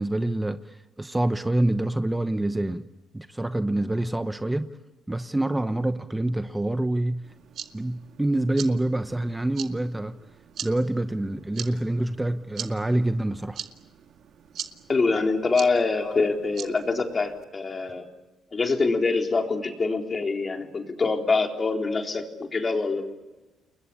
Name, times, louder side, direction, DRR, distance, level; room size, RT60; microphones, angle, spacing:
voice 1, 0.0-2.8 3.1-4.7 5.1-7.2 7.7-10.1 10.6-13.6, right 1 dB, 10° right, 1.0 m, -26 dB
sound 1, 7.2-17.4, right 8 dB, 70° right, 2.0 m, -42 dB
voice 2, 14.9-18.1 18.5-23.0, left 3 dB, 35° left, 3.9 m, -25 dB
29.5 x 21.5 x 8.5 m
cardioid pair, 90°, 0 cm